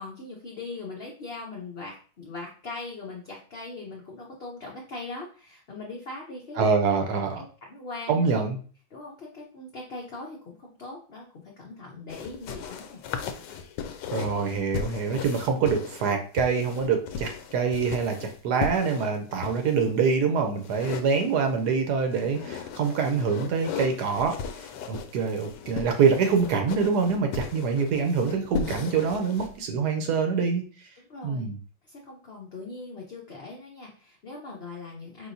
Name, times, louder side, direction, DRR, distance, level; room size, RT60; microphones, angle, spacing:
voice 1, 0.0-6.7 7.4-7.5 7.7-8.3 8.9-13.0 31.0-31.5 31.8-35.3, left 3 dB, 55° left, -2 dB, 0.7 m, -40 dB
voice 2, 6.6-7.4 8.1-8.6 14.1-30.6 31.2-31.6, right 5 dB, 70° right, 4 dB, 1.1 m, -25 dB
sound 1, 12.1-19.9 20.6-21.7 22.1-29.5, left 7 dB, 75° left, 1.2 m, -37 dB
4.8 x 3.5 x 2.6 m, 0.41 s
omnidirectional pair, 2.0 m